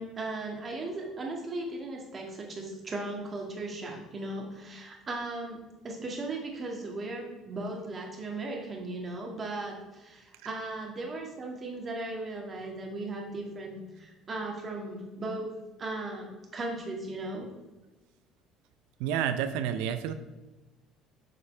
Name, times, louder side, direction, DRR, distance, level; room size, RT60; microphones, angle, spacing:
voice 1, 0.0-5.6 5.8-15.5 15.8-17.5, right 2 dB, 35° right, 0 dB, 2.0 m, -37 dB
voice 2, 19.0-20.1, right 9 dB, 80° right, 10 dB, 0.6 m, -29 dB
8.1 x 5.4 x 3.4 m, 1.1 s
supercardioid pair, 75°, 0 cm